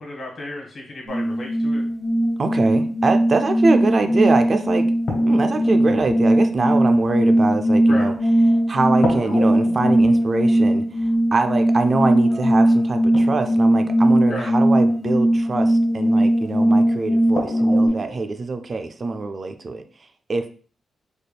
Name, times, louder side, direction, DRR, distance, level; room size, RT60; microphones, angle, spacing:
voice 1, 0.0-1.8 7.9-8.1 14.3-14.5, left 1 dB, 50° left, 0 dB, 1.5 m, -33 dB
sound 1, 1.1-17.9, right 1 dB, ahead, 0.8 m, -19 dB
voice 2, 2.4-4.9 5.3-8.1 8.7-10.8 11.3-19.8 20.3-20.5, right 3 dB, 40° right, 7 dB, 0.4 m, -23 dB
sound 2, 4.2-4.3 5.1-8.5 9.0-15.2 16.5-16.6 17.4-18.2, left 1 dB, 65° left, 1.3 m, -33 dB
4.1 x 3.3 x 2.2 m, 0.41 s
wide cardioid pair, 120°, 0 cm